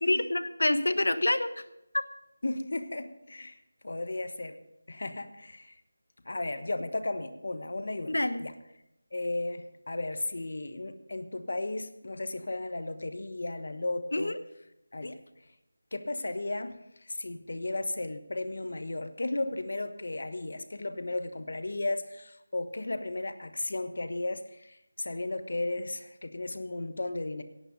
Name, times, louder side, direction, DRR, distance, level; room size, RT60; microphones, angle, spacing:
voice 1, 0.0-1.6 8.1-8.4 14.1-14.4 15.0-15.1, left 1 dB, 85° left, 10 dB, 1.2 m, -27 dB
voice 2, 2.4-3.6 3.8-4.6 4.9-5.8 6.2-8.5 9.1-14.4 14.9-15.2 15.9-27.4, left 2 dB, 60° left, 9 dB, 1.2 m, -35 dB
17.0 x 8.8 x 5.2 m, 0.84 s
figure-of-eight pair, 175°, 0 cm